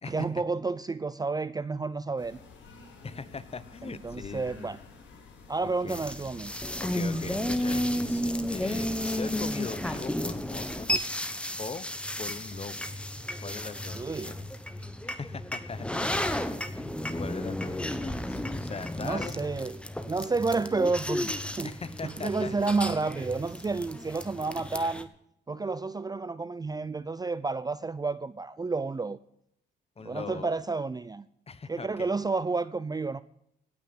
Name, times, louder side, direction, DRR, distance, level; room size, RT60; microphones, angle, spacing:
voice 1, 0.1-2.4 3.9-4.8 5.5-6.5 13.9-14.4 19.0-19.8 20.1-21.7 22.0-25.1 25.5-29.2 30.0-31.2 31.7-33.2, right 3 dB, 20° right, 0.5 m, -30 dB
sound 1, 2.2-7.7, left 4 dB, 70° left, 4.6 m, -50 dB
voice 2, 3.0-4.7 5.8-6.0 6.8-10.9 11.6-11.9 12.2-12.9 13.4-14.5 15.0-16.1 16.5-19.5 21.6-22.5 30.0-30.5 31.5-32.2, left 4 dB, 30° left, 1.1 m, -40 dB
sound 2, 5.9-25.0, left 1 dB, 5° left, 1.3 m, -33 dB
17.5 x 6.0 x 8.6 m
cardioid pair, 90°, 20 cm